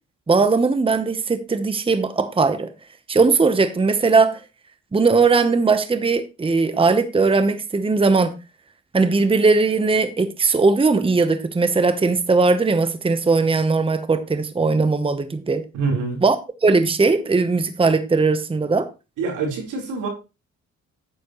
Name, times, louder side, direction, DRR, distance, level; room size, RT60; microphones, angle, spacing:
voice 1, 0.3-2.7 3.1-4.4 4.9-8.4 8.9-15.6 16.2-16.4 16.6-18.9, right 4 dB, 20° right, 0.9 m, -19 dB
voice 2, 15.7-16.2 19.2-20.1, right 4 dB, 85° right, 4.0 m, -25 dB
9.6 x 9.2 x 3.1 m
cardioid pair, 90°, 30 cm